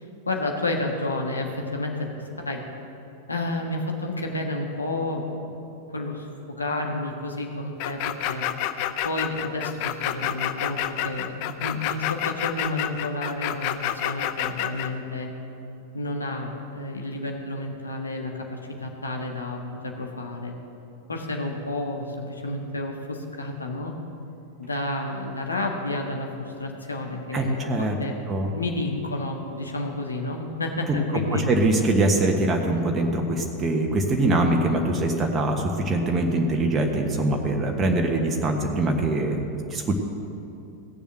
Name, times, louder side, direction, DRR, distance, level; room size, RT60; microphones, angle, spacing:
voice 1, 0.3-2.1 2.4-2.6 3.3-5.6 5.9-6.3 6.6-8.4 9.0-15.3 15.9-20.5 21.1-23.9 24.6-28.2 28.5-31.6, left 2 dB, 80° left, 2 dB, 1.5 m, -30 dB
sound 1, 7.8-14.9, left 12 dB, 45° left, 0.6 m, -28 dB
voice 2, 27.3-27.9 28.3-28.6 31.3-39.4 39.7-39.9, right 2 dB, 20° right, 1 dB, 1.4 m, -23 dB
17.5 x 7.1 x 7.7 m, 2.9 s
figure-of-eight pair, 90°, 0 cm